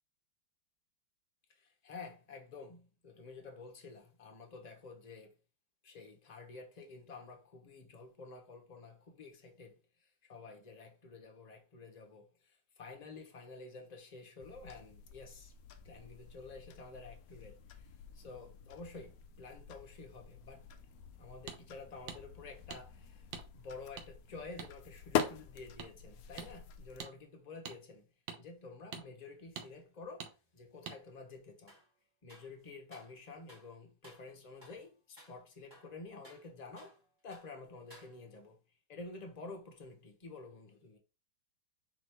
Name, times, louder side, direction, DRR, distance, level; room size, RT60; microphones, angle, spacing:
voice 1, 1.5-5.3 5.8-15.5 15.8-20.7 21.2-23.3 23.5-28.1 28.4-31.7 32.2-38.6 38.9-41.0, left 3 dB, 40° left, 0.6 m, -50 dB
sound 1, 14.4-27.0, left 9 dB, 85° left, 0.8 m, -44 dB
sound 2, 21.5-21.6 22.1-22.2 22.7-22.8 23.3-23.5 24.0-24.1 24.6-24.7 25.2-25.3 25.8-25.9 26.4-26.5 27.0-27.1 27.7-27.8 28.3-28.4 28.9-29.0 29.6-29.7 30.2-30.3 30.9-31.0, right 7 dB, 70° right, 1.4 m, -44 dB
sound 3, 31.7-31.9 32.3-33.2 33.5-33.7 34.0-34.3 34.6-34.9 35.2-35.4 35.7-37.0 37.3-37.5 37.9-38.5, equal, 15° right, 1.5 m, -59 dB
4.9 x 3.4 x 3.0 m
omnidirectional pair, 2.2 m